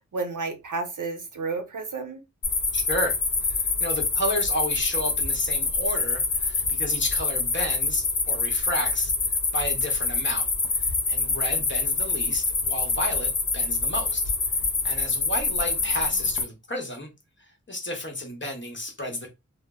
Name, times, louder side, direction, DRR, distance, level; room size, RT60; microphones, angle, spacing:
voice 1, 0.0-2.2, right 4 dB, 80° right, 0.7 m, -31 dB
sound 1, 2.4-16.4, left 4 dB, 75° left, 0.7 m, -26 dB
voice 2, 2.7-3.2 3.4-9.1 9.5-14.3 14.8-17.1 17.7-19.3, left 1 dB, 40° left, 0.9 m, -32 dB
2.1 x 2.0 x 3.5 m
wide cardioid pair, 60°, 30 cm